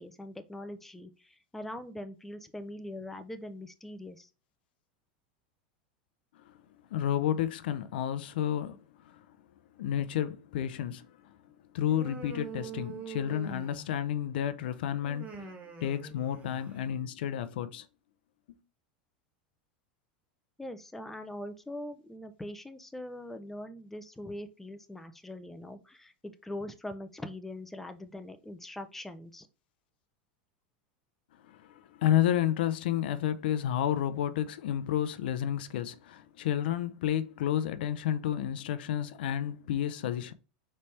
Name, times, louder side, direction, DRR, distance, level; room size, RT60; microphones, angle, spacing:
voice 1, 0.0-4.3 20.6-29.5, left 1 dB, 5° left, 0.5 m, -42 dB
voice 2, 6.9-8.8 9.0-9.2 9.8-11.1 11.7-15.5 15.8-17.9 18.5-18.6 31.5-40.3, left 10 dB, 75° left, 0.5 m, -31 dB
Human voice, 11.9-14.1 15.0-16.9, right 5 dB, 25° right, 1.2 m, -44 dB
4.2 x 3.3 x 3.2 m
supercardioid pair, 125°, 5 cm